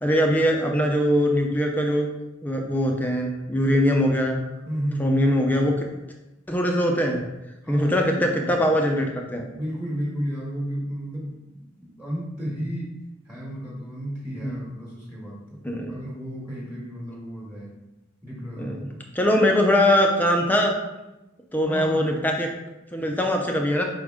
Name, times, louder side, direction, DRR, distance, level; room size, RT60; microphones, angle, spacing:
voice 1, 0.0-2.1 2.4-4.4 5.0-5.9 6.5-7.2 7.7-9.4 14.4-14.5 15.6-15.9 18.6-18.8 19.1-20.7 21.5-22.5 22.9-23.8, equal, 10° left, 1 dB, 0.6 m, -22 dB
voice 2, 4.6-5.3 7.6-8.5 9.5-13.0 13.3-15.6 15.9-17.7 18.2-19.0 21.7-22.2, equal, 10° right, -6 dB, 1.3 m, -33 dB
5.2 x 5.0 x 3.6 m, 0.98 s
head